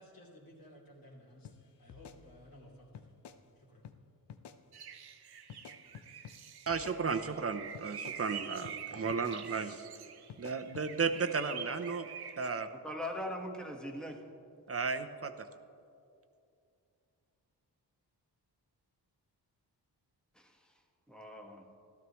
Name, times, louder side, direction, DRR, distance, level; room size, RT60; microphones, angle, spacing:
voice 1, 0.0-1.5 1.8-3.1 3.7-3.8, equal, 55° left, -4 dB, 3.0 m, -55 dB
sound 1, 1.4-1.6 1.9-2.6 2.9-3.4 3.8-4.0 4.3-4.6 5.5-6.4 6.7-7.4 7.7-8.2 8.6-8.8 9.1-9.4 10.3-10.9, left 8 dB, 70° left, 0.7 m, -51 dB
sound 2, 4.7-12.5, right 8 dB, 65° right, 0.8 m, -47 dB
voice 2, 6.7-9.8 10.4-12.1 12.4-12.7 14.7-15.3, right 5 dB, 35° right, 9 dB, 0.7 m, -34 dB
voice 3, 12.8-14.2 20.4-20.5 21.1-21.7, left 1 dB, ahead, 2 dB, 1.3 m, -40 dB
14.0 x 12.5 x 3.1 m, 2.6 s
cardioid pair, 60°, 42 cm